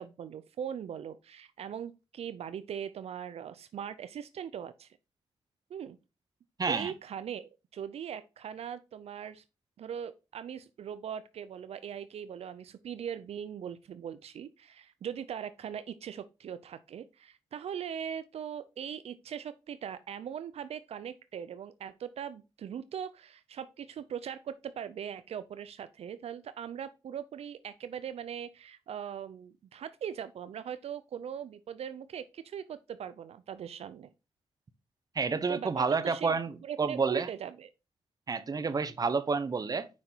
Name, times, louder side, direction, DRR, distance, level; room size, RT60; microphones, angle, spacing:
voice 1, 0.0-5.0 5.7-6.0 6.7-9.4 9.8-34.1 35.5-37.7, right 8 dB, 75° right, 0.5 m, -40 dB
voice 2, 6.6-6.9 35.1-37.3 38.3-39.9, right 4 dB, 35° right, 0.8 m, -29 dB
6.4 x 5.4 x 4.4 m
cardioid pair, 90°, 11 cm